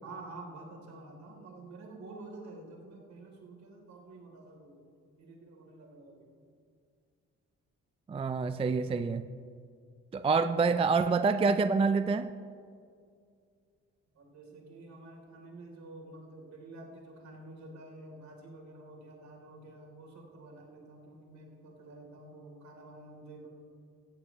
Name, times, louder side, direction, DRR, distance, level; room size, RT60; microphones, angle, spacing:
voice 1, 0.0-4.8 5.2-6.3 14.2-23.5, right 2 dB, 65° right, 0 dB, 3.3 m, -49 dB
voice 2, 8.1-9.3 10.1-12.3, right 4 dB, 20° right, 12 dB, 0.4 m, -27 dB
17.5 x 14.0 x 3.1 m, 2.3 s
cardioid pair, 90°, 30 cm